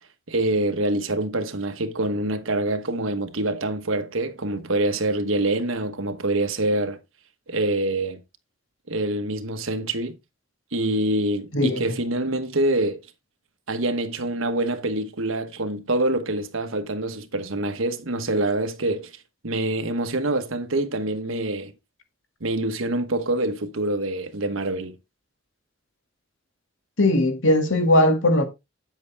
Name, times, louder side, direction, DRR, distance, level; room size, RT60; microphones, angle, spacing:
voice 1, 0.3-7.0 7.5-8.2 8.9-10.2 10.7-13.0 13.7-19.1 19.4-21.7 22.4-25.0, right 2 dB, 80° right, 1.2 m, -25 dB
voice 2, 27.0-28.4, left 1 dB, 70° left, 2.1 m, -19 dB
8.4 x 7.9 x 3.5 m
head